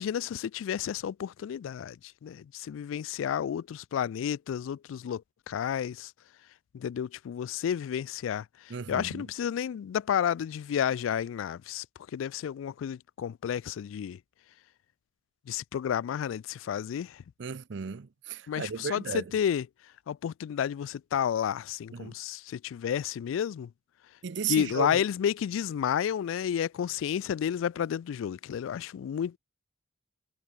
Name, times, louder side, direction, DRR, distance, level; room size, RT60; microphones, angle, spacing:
voice 1, 0.0-5.2 5.5-6.1 6.7-11.9 12.1-14.2 15.5-17.2 18.5-19.6 20.1-23.7 24.5-29.4, left 9 dB, 85° left, 0.3 m, -31 dB
voice 2, 8.7-9.2 17.4-19.3 21.9-22.1 24.2-25.0, right 6 dB, 65° right, 0.5 m, -35 dB
head